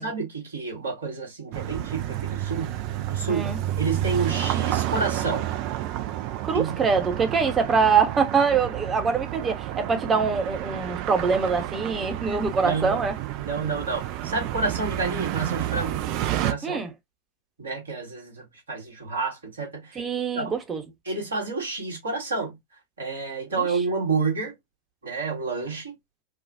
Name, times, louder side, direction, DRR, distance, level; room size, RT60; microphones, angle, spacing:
voice 1, 0.0-2.7 3.1-3.5 3.8-5.5 6.5-6.8 12.2-13.0 13.4-16.0 16.4-16.8 17.6-20.0 20.3-20.5 21.1-22.6 23.0-24.5 25.0-25.9, right 4 dB, 70° right, 2.2 m, -29 dB
sound 1, 1.5-16.5, right 13 dB, 45° right, 0.5 m, -30 dB
voice 2, 3.3-3.6 6.4-13.1 16.6-16.9 19.9-20.8, right 5 dB, 20° right, 1.1 m, -24 dB
4.7 x 2.4 x 2.5 m
figure-of-eight pair, 90°, 0 cm